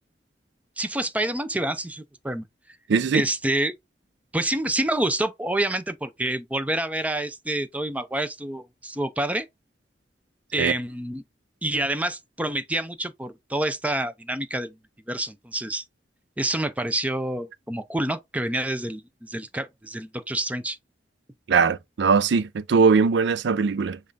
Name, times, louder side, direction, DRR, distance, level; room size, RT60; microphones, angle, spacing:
voice 1, 0.8-2.5 3.1-3.8 4.3-9.5 10.5-11.2 11.6-14.8 15.1-15.8 16.4-20.8, right 1 dB, 10° right, 0.4 m, -27 dB
voice 2, 2.9-3.2 10.6-10.7 21.5-24.0, right 5 dB, 75° right, 0.4 m, -20 dB
5.3 x 2.4 x 3.9 m
head